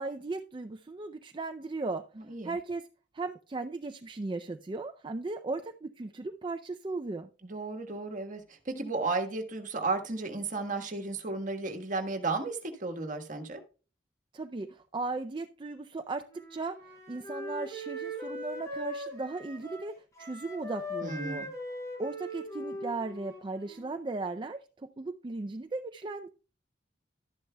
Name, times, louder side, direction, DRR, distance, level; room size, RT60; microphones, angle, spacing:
voice 1, 0.0-2.1 2.4-2.8 3.1-7.3 14.3-16.2 16.5-21.5 22.0-26.3, right 3 dB, 25° right, 0.4 m, -37 dB
voice 2, 2.2-2.6 7.4-13.6 21.0-21.5, right 3 dB, 45° right, 1.4 m, -34 dB
Wind instrument woodwind instrument, 16.3-24.0, equal, 20° left, 5.5 m, -40 dB
12.0 x 10.5 x 2.2 m
head